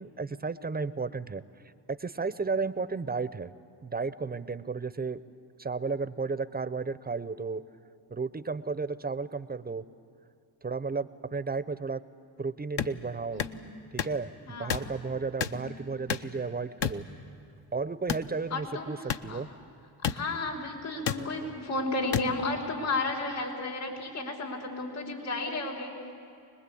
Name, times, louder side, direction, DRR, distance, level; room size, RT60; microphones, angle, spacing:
voice 1, 0.0-1.4 1.9-3.5 3.8-5.2 5.6-7.6 8.1-9.8 10.6-12.0 12.4-13.5 13.9-17.0 17.7-19.0 19.2-19.5, right 4 dB, 20° right, 15 dB, 0.7 m, -33 dB
sound 1, 12.8-12.9 13.4-13.6 14.0-14.2 14.7-14.9 15.4-15.6 16.1-16.3 16.8-17.0 18.1-18.3 19.1-19.2 20.0-20.2 21.1-21.2 22.1-22.3, left 8 dB, 55° left, 1.0 m, -29 dB
voice 2, 13.3-13.7 14.5-14.8 15.5-15.8 18.3-18.8 19.3-19.4 20.1-25.9, left 2 dB, 85° left, -2 dB, 4.8 m, -33 dB
25.0 x 20.0 x 8.6 m, 2.5 s
supercardioid pair, 60°, 49 cm